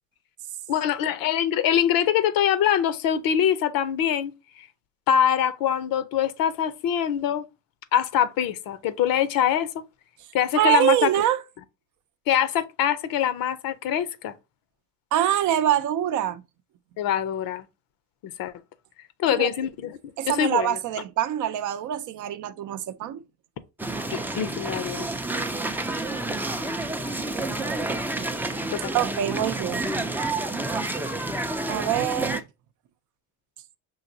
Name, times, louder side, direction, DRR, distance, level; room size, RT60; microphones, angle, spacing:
voice 1, 0.7-4.3 5.1-7.4 7.9-9.7 10.3-11.1 12.3-14.3 17.0-17.6 18.4-18.5 19.2-20.0 20.3-20.8 24.1-25.1 28.8-28.9, left 9 dB, 65° left, 0.7 m, -24 dB
voice 2, 10.5-11.4 15.1-16.4 19.3-19.5 20.2-23.2 28.9-29.8 31.7-32.4, right 11 dB, 55° right, 0.5 m, -24 dB
sound 1, 23.8-32.4, right 2 dB, 5° right, 0.4 m, -29 dB
5.5 x 2.9 x 2.7 m
cardioid pair, 105°, 37 cm